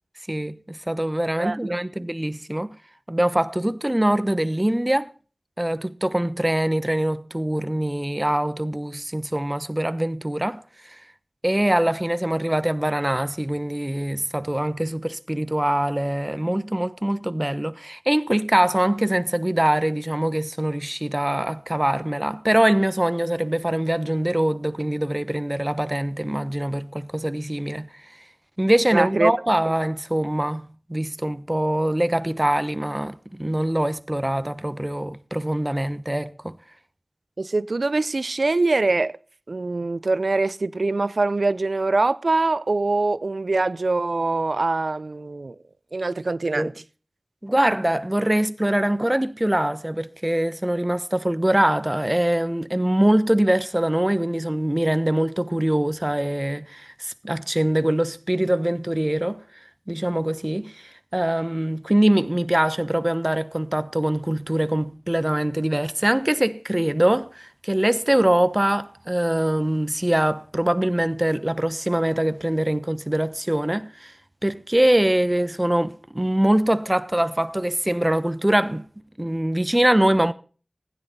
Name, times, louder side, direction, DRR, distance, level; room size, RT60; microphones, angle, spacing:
voice 1, 0.3-2.8 3.1-5.1 5.6-11.0 11.4-27.9 28.6-36.6 46.5-46.7 47.4-59.4 59.9-74.1 74.4-78.8 79.2-80.3, right 1 dB, 20° right, 1.0 m, -23 dB
voice 2, 1.4-1.8 28.9-29.3 37.4-39.2 39.5-45.6 45.9-46.7, right 3 dB, 80° right, 0.6 m, -23 dB
16.0 x 9.9 x 4.2 m
wide cardioid pair, 40°, 0 cm